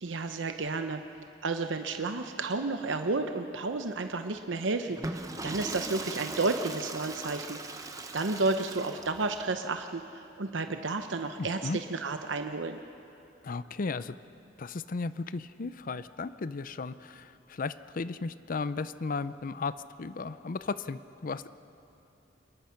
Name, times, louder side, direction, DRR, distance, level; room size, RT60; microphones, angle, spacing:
voice 1, 0.0-1.0 1.4-5.2 5.4-12.8, right 3 dB, 85° right, 7 dB, 0.8 m, -32 dB
Water / Toilet flush, 4.9-9.4, right 2 dB, 20° right, 1.0 m, -39 dB
voice 2, 11.4-11.8 13.4-14.1 14.6-21.5, left 4 dB, 50° left, 14 dB, 0.5 m, -35 dB
27.0 x 21.0 x 5.8 m, 2.9 s
head